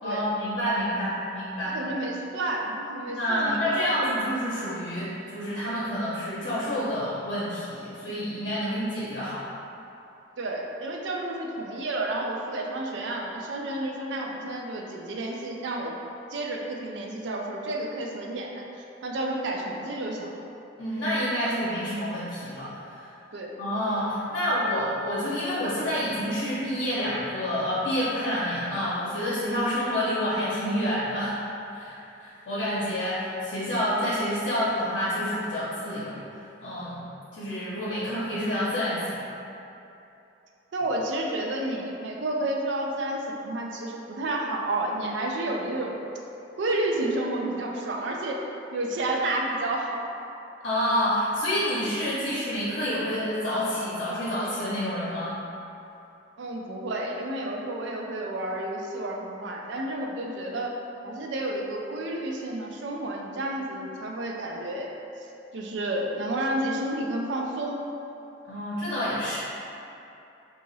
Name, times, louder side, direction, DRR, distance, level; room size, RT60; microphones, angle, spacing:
voice 1, 0.0-1.8 3.1-9.5 20.8-23.1 23.6-31.4 31.7-36.2 36.6-37.1 37.3-39.2 50.6-55.4 68.4-69.4, equal, 65° left, -10 dB, 0.7 m, -28 dB
voice 2, 1.7-4.1 10.4-16.0 16.3-20.4 23.3-23.6 40.7-46.0 46.6-48.4 48.7-50.1 56.4-60.8 61.0-64.9 65.5-67.8, right 1 dB, 65° right, 0 dB, 0.4 m, -30 dB
2.9 x 2.4 x 4.0 m, 2.8 s
head